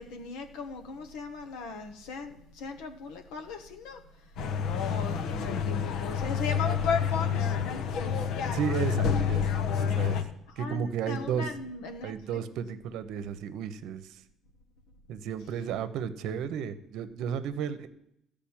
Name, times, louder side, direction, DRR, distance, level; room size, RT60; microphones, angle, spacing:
voice 1, 0.0-4.0 4.9-7.5 9.9-10.0 10.6-12.1, left 5 dB, 90° left, 6 dB, 1.2 m, -36 dB
sound 1, 4.4-10.2, left 7 dB, 65° left, 1.0 m, -28 dB
voice 2, 8.5-9.5 9.8-10.2 10.6-11.5 12.0-14.2 15.1-17.9, right 8 dB, 70° right, 12 dB, 0.9 m, -33 dB
13.5 x 5.2 x 8.9 m, 0.76 s
cardioid pair, 135°, 0 cm